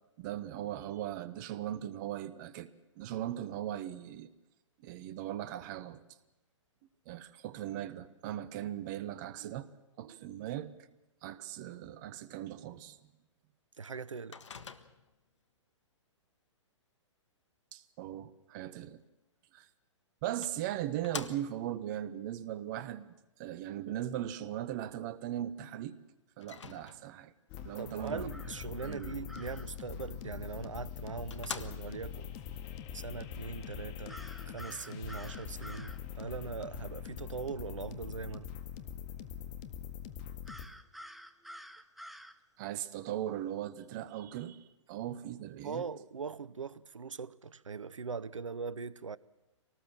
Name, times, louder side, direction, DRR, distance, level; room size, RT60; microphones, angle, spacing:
voice 1, 0.2-4.3 4.8-6.0 7.0-10.7 11.2-13.0 17.7-19.0 19.5-19.7 20.2-23.1 23.4-26.0 26.4-27.3 27.6-28.4 28.8-29.1 42.6-45.8, right 12 dB, 40° right, 1.3 m, -39 dB
voice 2, 13.8-14.4 27.8-32.3 32.9-38.5 45.6-49.2, right 5 dB, 80° right, 0.8 m, -41 dB
Microwave oven, 14.3-15.2 19.6-19.7 20.4-21.8 26.4-27.3 30.4-30.5 30.9-31.0 31.3-32.2, left 6 dB, 70° left, 1.4 m, -45 dB
sound 1, 27.5-40.7, left 9 dB, 35° left, 1.9 m, -43 dB
sound 2, 28.3-29.7 34.1-36.0 40.5-42.4, equal, ahead, 0.9 m, -49 dB
24.5 x 18.5 x 7.6 m
figure-of-eight pair, 115°, 16 cm